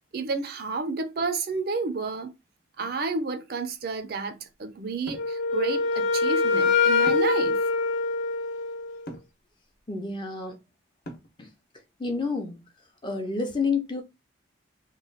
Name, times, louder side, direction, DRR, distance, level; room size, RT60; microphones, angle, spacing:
voice 1, 0.1-2.3 2.8-7.6, right 4 dB, 50° right, 0.4 m, -30 dB
Wind instrument woodwind instrument, 5.1-9.0, left 4 dB, 85° left, 1.0 m, -24 dB
sound 1, 5.1-5.4 7.1-7.4 9.1-9.4 11.0-11.4, equal, 50° left, 0.9 m, -40 dB
voice 2, 9.9-10.6 11.4-11.5 12.0-12.6 13.0-14.0, left 4 dB, 25° left, 0.6 m, -29 dB
3.0 x 2.2 x 3.9 m
head